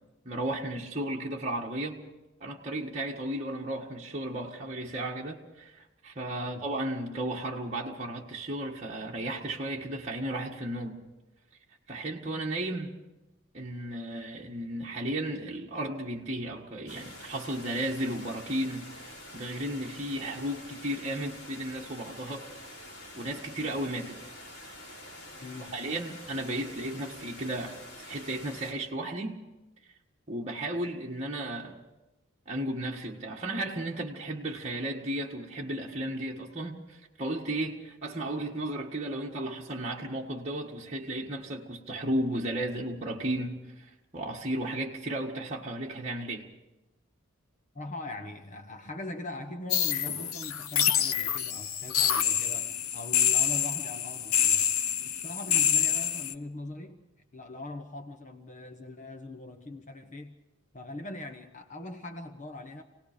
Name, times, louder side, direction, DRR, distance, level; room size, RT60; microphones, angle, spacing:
voice 1, 0.2-2.0 2.4-11.0 11.9-12.9 13.5-22.5 23.2-24.2 25.7-29.4 30.3-31.8 32.5-46.5, right 1 dB, 30° right, -3 dB, 1.8 m, -34 dB
voice 2, 6.3-6.6 25.4-25.8 47.7-54.7 55.0-57.0 57.3-60.4 60.7-62.8, left 2 dB, 35° left, 6 dB, 1.2 m, -41 dB
sound 1, 16.9-28.7, left 1 dB, 55° left, 5.8 m, -47 dB
sound 2, 49.7-56.3, left 9 dB, 85° left, 1.0 m, -27 dB
28.5 x 18.5 x 5.2 m, 1.0 s
head